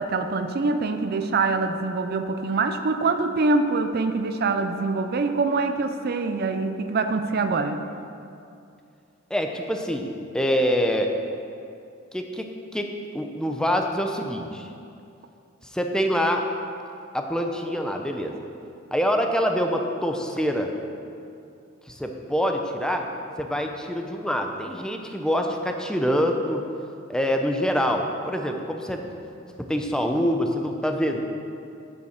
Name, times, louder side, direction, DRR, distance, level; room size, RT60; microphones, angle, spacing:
voice 1, 0.0-7.8, right 3 dB, 50° right, 8 dB, 0.5 m, -24 dB
voice 2, 9.3-10.1 10.3-11.1 12.1-14.7 15.7-16.4 17.1-18.4 18.9-20.7 21.9-23.0 23.4-26.6 27.1-29.0 29.6-31.2, equal, 5° left, 3 dB, 0.7 m, -25 dB
8.5 x 7.0 x 6.5 m, 2.5 s
head